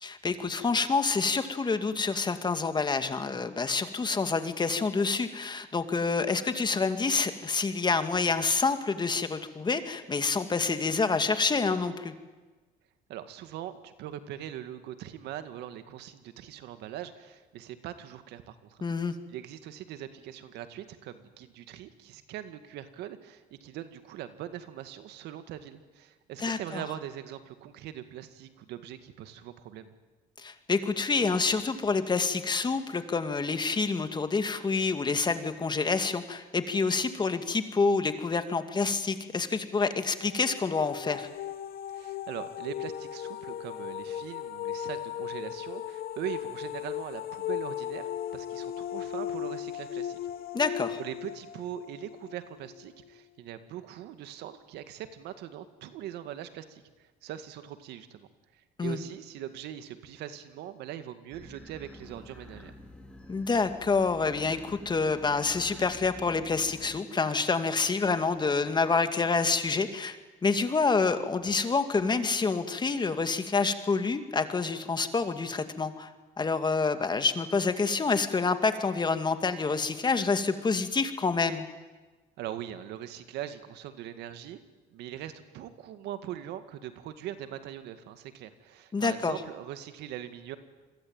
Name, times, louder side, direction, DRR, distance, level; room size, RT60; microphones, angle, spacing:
voice 1, 0.0-12.1 18.8-19.1 26.4-26.8 30.4-41.3 50.5-51.0 58.8-59.0 63.3-70.2 70.4-76.1 76.4-81.7 88.9-89.3, left 4 dB, 25° left, 9 dB, 2.2 m, -27 dB
voice 2, 13.1-29.9 41.9-50.2 51.0-62.7 82.4-84.6 84.9-90.6, right 11 dB, 85° right, 10 dB, 2.1 m, -41 dB
sound 1, 40.2-53.1, left 10 dB, 60° left, 1.0 m, -37 dB
sound 2, 61.3-68.9, left 1 dB, 5° left, 3.3 m, -50 dB
27.5 x 22.0 x 9.0 m, 1.2 s
cardioid pair, 110°, 17 cm